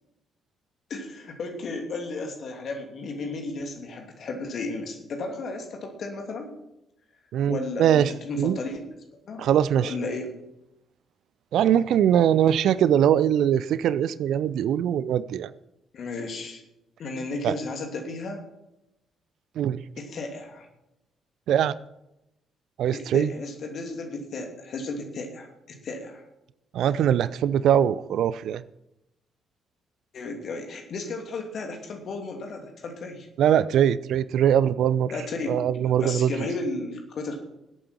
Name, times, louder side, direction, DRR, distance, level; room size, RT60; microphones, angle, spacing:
voice 1, 0.9-6.5 7.5-8.8 9.2-9.5 9.8-10.3 15.9-16.6 17.0-18.4 20.0-20.7 22.9-26.2 30.1-33.3 35.1-35.7 36.0-37.3, left 3 dB, 50° left, 3 dB, 2.9 m, -34 dB
voice 2, 7.3-8.1 8.4-8.6 9.4-9.9 11.5-15.5 17.4-17.5 19.6-19.8 21.5-21.7 22.8-23.3 26.7-28.6 33.4-35.1 35.5-36.3, right 10 dB, 60° right, 17 dB, 0.5 m, -22 dB
19.5 x 8.6 x 4.5 m, 0.88 s
figure-of-eight pair, 40°, 0 cm